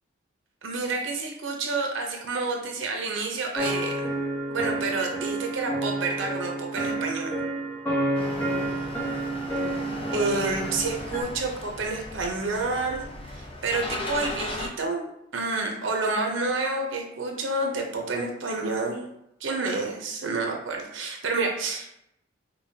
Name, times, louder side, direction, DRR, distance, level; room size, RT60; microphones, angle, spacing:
voice 1, 0.6-4.1 4.5-7.4 10.1-15.0 15.3-19.0 19.4-21.9, right 3 dB, 90° right, 2 dB, 0.7 m, -29 dB
sound 1, 3.6-11.2, right 2 dB, 10° left, 0.9 m, -30 dB
sound 2, 8.1-14.7, left 2 dB, 30° left, 0.6 m, -37 dB
5.4 x 2.3 x 2.7 m, 0.79 s
head